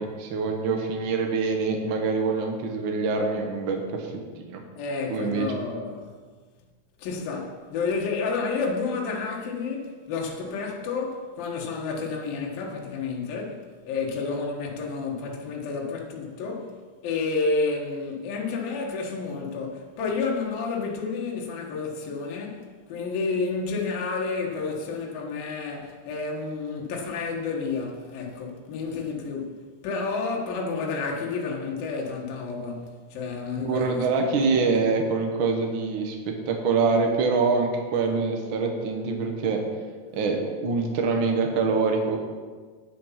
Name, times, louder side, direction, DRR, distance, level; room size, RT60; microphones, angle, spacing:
voice 1, 0.0-4.1 4.5-4.6 5.1-5.5 33.6-39.6 40.1-42.2, right 4 dB, 70° right, 1.1 m, -25 dB
voice 2, 4.8-6.1 7.0-16.8 17.0-22.6 22.9-29.6 29.8-34.6, left 4 dB, 75° left, 3.1 m, -30 dB
10.0 x 7.6 x 5.8 m
omnidirectional pair, 4.2 m